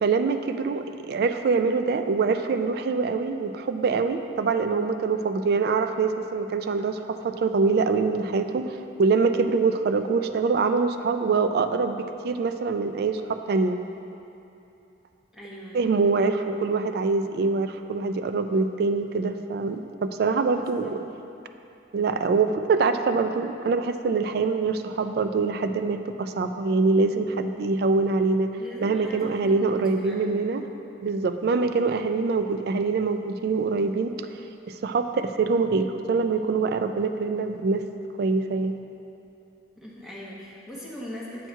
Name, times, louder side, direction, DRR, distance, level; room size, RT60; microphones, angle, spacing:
voice 1, 0.0-13.8 15.7-21.0 21.9-28.5 28.8-30.6 31.0-34.1 34.7-37.9 38.2-38.7, right 4 dB, 55° right, 8 dB, 0.3 m, -24 dB
voice 2, 15.3-15.9 20.4-20.9 28.6-30.3 39.8-41.5, left 1 dB, ahead, -6 dB, 1.0 m, -40 dB
7.9 x 4.5 x 4.5 m, 2.8 s
head